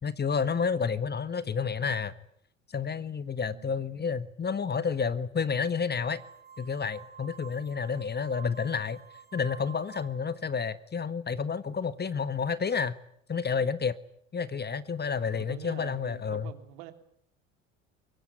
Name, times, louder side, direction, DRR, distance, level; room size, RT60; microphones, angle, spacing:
voice 1, 0.0-2.1 2.7-6.2 6.6-9.0 9.3-13.0 13.3-14.0 14.3-16.5, left 6 dB, 25° left, 1.5 m, -30 dB
sound 1, 6.0-10.4, right 7 dB, 25° right, 3.4 m, -50 dB
voice 2, 15.3-16.9, right 13 dB, 65° right, 3.3 m, -45 dB
25.0 x 23.0 x 9.8 m
hypercardioid pair, 65°, 39 cm